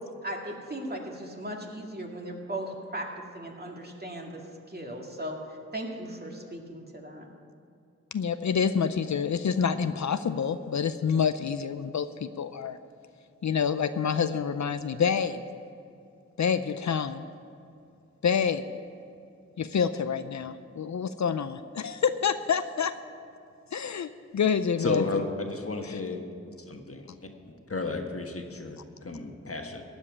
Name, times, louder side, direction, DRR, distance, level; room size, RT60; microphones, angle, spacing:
voice 1, 0.0-3.1 3.3-4.4 4.7-7.3, right 1 dB, 35° right, 0 dB, 2.2 m, -37 dB
voice 2, 8.1-12.8 13.4-15.4 16.4-17.2 18.2-18.6 19.6-22.9 23.7-25.0 25.9-26.0, left 7 dB, 70° left, 11 dB, 0.5 m, -27 dB
voice 3, 24.8-26.2 26.6-27.1 27.4-29.8, left 3 dB, 50° left, 3 dB, 1.5 m, -32 dB
16.0 x 5.4 x 9.7 m, 2.4 s
cardioid pair, 40°, 30 cm